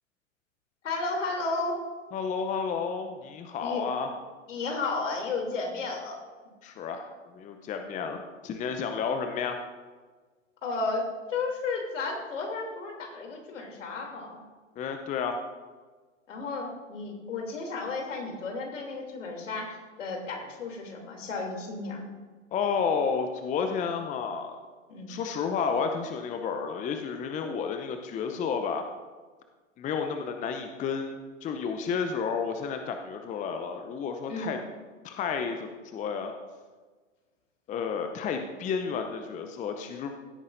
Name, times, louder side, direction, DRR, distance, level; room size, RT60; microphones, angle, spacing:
voice 1, 0.8-1.8 3.6-3.8 4.5-6.2 10.6-14.4 16.3-22.1 24.9-25.1 34.3-34.5, left 3 dB, 70° left, 1 dB, 3.2 m, -33 dB
voice 2, 2.1-4.1 6.6-9.6 14.8-15.4 22.5-24.6 25.1-28.8 29.8-34.6 35.0-36.3 37.7-40.1, left 6 dB, 20° left, 6 dB, 0.7 m, -31 dB
16.0 x 9.3 x 2.7 m, 1.4 s
hypercardioid pair, 105°, 38 cm